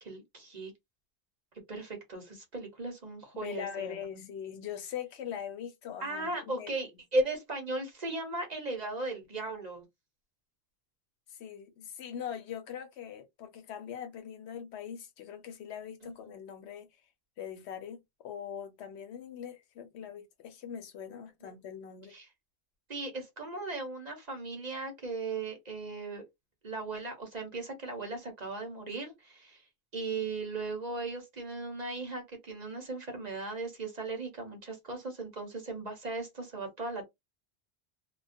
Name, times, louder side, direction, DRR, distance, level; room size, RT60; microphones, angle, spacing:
voice 1, 0.0-0.7 1.7-4.2 6.0-9.8 16.0-16.2 21.4-21.5 22.1-22.2 22.9-26.2 26.6-29.6 29.9-37.0, right 2 dB, 45° right, 0.9 m, -37 dB
voice 2, 3.3-6.7 11.3-16.9 17.4-22.1, left 8 dB, 80° left, 0.9 m, -42 dB
2.2 x 2.2 x 2.5 m
omnidirectional pair, 1.1 m